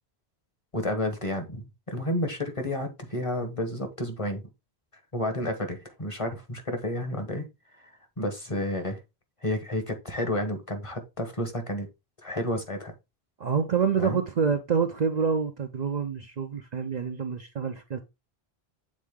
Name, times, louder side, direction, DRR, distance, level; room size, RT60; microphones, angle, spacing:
voice 1, 0.7-4.4 5.1-7.5 8.2-9.0 9.4-11.9 12.2-12.9 14.0-14.2, left 1 dB, 30° left, 1.2 m, -31 dB
voice 2, 13.4-18.0, right 6 dB, 50° right, 0.6 m, -27 dB
7.5 x 3.7 x 3.6 m
omnidirectional pair, 1.1 m